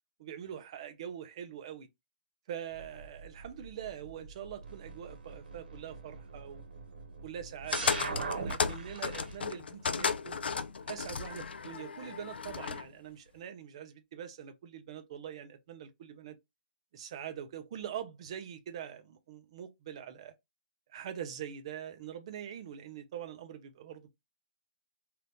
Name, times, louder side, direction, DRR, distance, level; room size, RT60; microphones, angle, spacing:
voice 1, 0.2-1.9 2.5-6.6 7.2-10.4 10.9-16.4 16.9-20.3 20.9-24.1, right 9 dB, 35° right, 0.6 m, -43 dB
sound 1, 2.7-9.4, right 3 dB, 80° right, 1.3 m, -42 dB
sound 2, 7.7-12.9, left 5 dB, 85° left, 0.5 m, -34 dB
2.8 x 2.4 x 3.4 m
hypercardioid pair, 170°, 5 cm